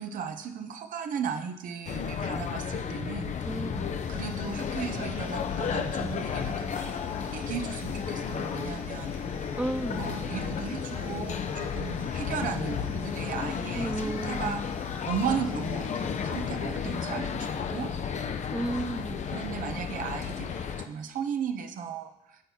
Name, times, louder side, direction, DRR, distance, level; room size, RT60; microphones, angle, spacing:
voice 1, 0.0-3.7 4.1-9.1 10.0-14.6 15.0-17.9 19.3-22.1, right 7 dB, 65° right, 6 dB, 0.8 m, -36 dB
sound 1, 1.9-20.9, left 7 dB, 55° left, 0.7 m, -33 dB
voice 2, 3.4-3.9 9.6-10.1 13.7-14.6 18.5-19.2, right 1 dB, 10° right, 14 dB, 0.4 m, -33 dB
sound 2, 4.0-16.4, left 2 dB, 75° left, 2.4 m, -49 dB
8.8 x 4.1 x 5.6 m, 0.85 s
supercardioid pair, 55°, 15 cm